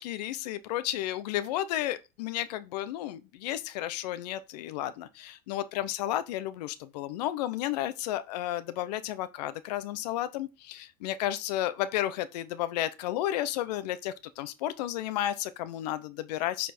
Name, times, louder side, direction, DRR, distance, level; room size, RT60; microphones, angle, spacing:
voice 1, 0.0-16.7, left 13 dB, 85° left, 0.7 m, -32 dB
8.4 x 4.3 x 4.3 m
supercardioid pair, 115°, 20 cm